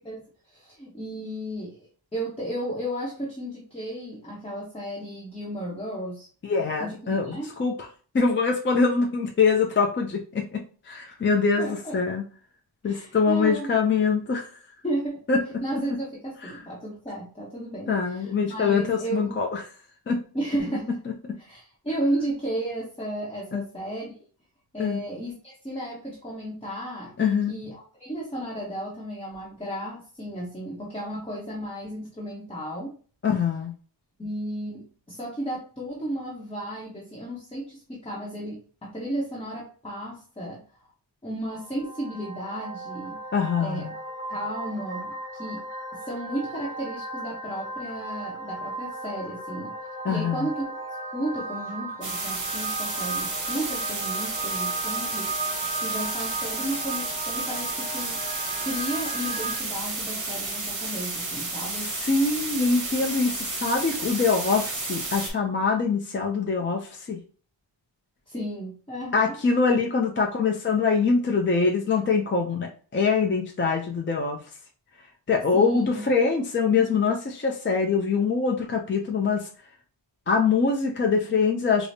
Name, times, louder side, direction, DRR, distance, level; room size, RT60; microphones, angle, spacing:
voice 1, 0.0-6.3 6.8-7.5 11.6-12.0 12.8-13.7 14.8-15.2 15.6-19.4 20.3-21.0 21.4-24.3 24.7-27.1 27.5-33.0 34.2-40.6 41.2-43.2 43.6-43.9 44.3-45.6 45.9-49.7 50.1-50.6 51.1-55.3 55.8-58.2 58.6-61.9 68.3-69.3 75.5-76.1, right 1 dB, 15° left, -5 dB, 0.9 m, -33 dB
voice 2, 6.4-7.7 8.1-12.2 12.8-14.6 15.3-15.4 15.7-15.8 16.4-16.6 17.9-19.6 20.1-20.2 21.1-21.2 23.5-23.6 24.8-25.0 27.2-27.5 33.2-33.7 43.3-43.9 50.0-50.5 61.8-67.2 69.1-74.4 75.3-79.5 80.3-81.9, left 5 dB, 30° left, 1 dB, 0.4 m, -24 dB
sound 1, 41.5-59.6, right 2 dB, 20° right, 0.9 m, -35 dB
sound 2, 52.0-65.3, right 3 dB, 40° right, 1.0 m, -32 dB
4.9 x 2.0 x 2.6 m, 0.40 s
wide cardioid pair, 180°, 44 cm